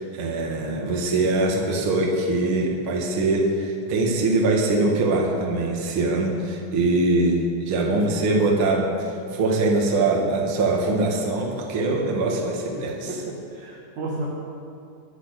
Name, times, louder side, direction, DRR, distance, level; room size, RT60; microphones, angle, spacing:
voice 1, 0.0-13.1, right 2 dB, 40° right, -1 dB, 1.9 m, -23 dB
voice 2, 12.7-14.3, right 2 dB, 60° right, -2 dB, 2.0 m, -33 dB
24.5 x 8.5 x 6.7 m, 2.6 s
omnidirectional pair, 5.4 m